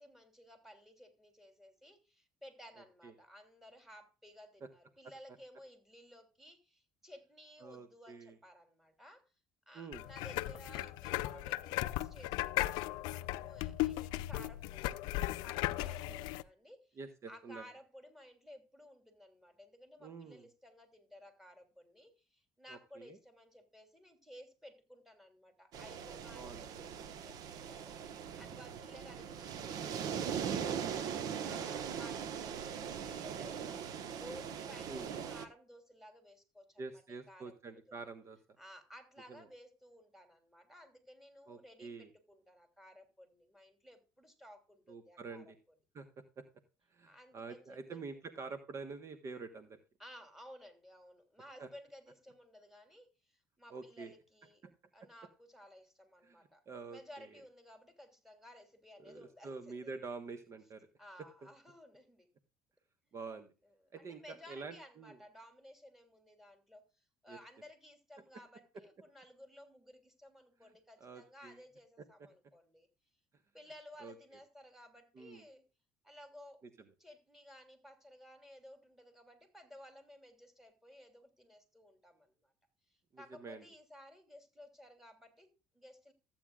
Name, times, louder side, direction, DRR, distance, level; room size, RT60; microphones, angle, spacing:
voice 1, 0.0-9.3 9.7-14.9 15.4-17.0 17.3-36.8 37.3-37.9 38.6-45.5 47.0-48.0 50.0-54.7 54.9-56.6 56.9-60.0 61.0-62.3 63.6-72.9 73.5-75.6 76.0-76.6 77.0-82.5 82.9-86.1, equal, 5° right, 3.1 m, -56 dB
voice 2, 7.6-8.4 9.7-10.0 15.8-16.2 17.0-17.6 20.0-20.5 22.7-23.2 26.3-26.6 34.8-35.1 36.8-38.4 39.3-39.5 41.5-42.1 44.9-45.6 45.9-46.4 46.9-49.8 51.6-51.7 53.7-54.1 54.6-54.7 56.2-56.4 56.7-57.3 59.0-60.9 63.1-63.5 63.9-65.2 67.3-67.4 70.6-70.7 71.0-71.6 74.0-74.1 75.1-75.4 83.1-83.6, right 4 dB, 45° right, 1.3 m, -47 dB
sound 1, 9.9-16.4, left 17 dB, 75° left, 0.5 m, -37 dB
sound 2, 25.7-35.4, right 8 dB, 60° right, 1.2 m, -40 dB
14.5 x 9.0 x 2.4 m
supercardioid pair, 90°, 7 cm